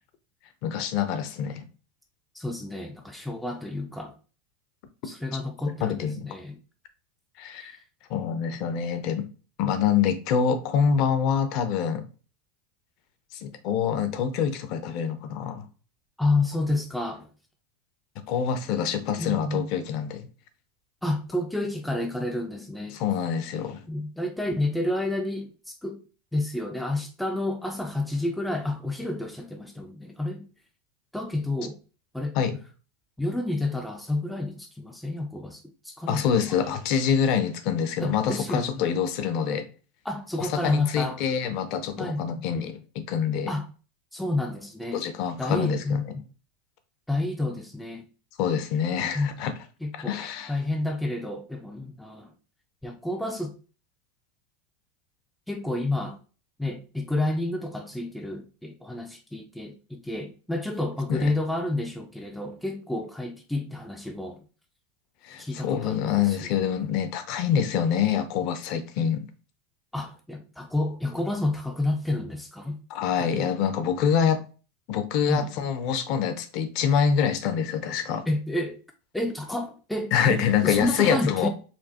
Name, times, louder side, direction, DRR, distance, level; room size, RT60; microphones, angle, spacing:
voice 1, 0.6-1.7 5.8-6.3 7.4-7.7 8.1-9.2 9.6-12.0 13.3-15.7 18.3-20.3 22.9-23.9 32.3-32.6 36.1-39.7 40.5-43.5 44.9-46.2 48.4-49.5 49.9-50.6 61.1-61.3 65.2-69.2 72.9-74.5 74.9-78.2 80.1-81.5, left 7 dB, 45° left, 0.6 m, -26 dB
voice 2, 2.3-4.1 5.0-6.6 7.6-7.7 16.2-17.3 19.2-19.7 21.0-23.0 23.9-26.0 26.3-30.4 31.1-31.8 32.1-32.3 33.2-36.3 38.0-38.8 40.1-41.2 42.0-42.4 43.5-43.7 44.1-45.0 45.4-46.2 47.1-48.0 49.1-49.3 49.8-50.2 50.5-52.3 52.8-53.5 55.5-56.2 56.6-64.4 65.4-66.5 69.9-72.8 73.2-73.5 75.3-75.5 78.3-78.8 79.1-81.5, left 2 dB, 5° left, 0.3 m, -30 dB
4.4 x 2.7 x 2.8 m
supercardioid pair, 160°, 0 cm